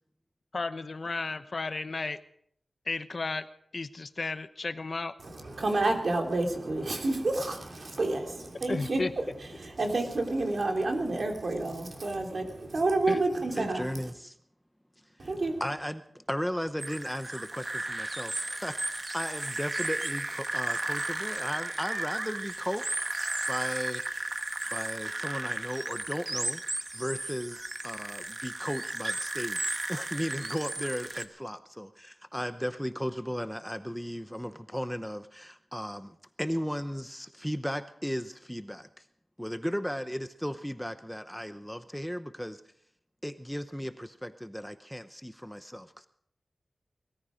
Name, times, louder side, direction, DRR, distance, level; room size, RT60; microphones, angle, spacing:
voice 1, 0.5-2.2 2.9-3.5 3.7-5.1 8.7-9.1 13.1-13.2, left 3 dB, 55° left, 12 dB, 0.8 m, -33 dB
voice 2, 5.2-14.1 15.2-15.6, right 2 dB, 65° right, 3 dB, 2.8 m, -29 dB
voice 3, 13.6-14.4 15.2-15.3 15.6-23.0 23.5-24.4 24.7-39.0 39.4-42.6 43.2-46.1, equal, ahead, 10 dB, 0.7 m, -36 dB
sound 1, 16.8-31.2, right 2 dB, 30° right, 1.3 m, -34 dB
20.0 x 14.0 x 5.1 m, 0.68 s
wide cardioid pair, 95°, 0 cm